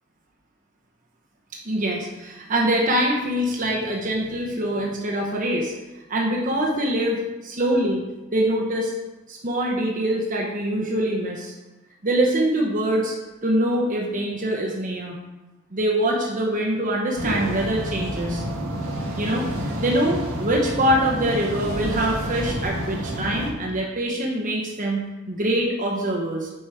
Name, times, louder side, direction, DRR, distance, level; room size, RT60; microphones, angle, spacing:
voice 1, 1.6-5.7 6.1-8.0 8.3-8.9 9.3-11.5 12.0-13.1 13.4-15.2 15.7-18.4 19.2-19.5 19.8-26.5, right 1 dB, 35° right, -1 dB, 1.0 m, -24 dB
sound 1, 17.2-23.5, equal, 85° right, 1.5 m, -29 dB
7.6 x 5.1 x 4.8 m, 1.1 s
head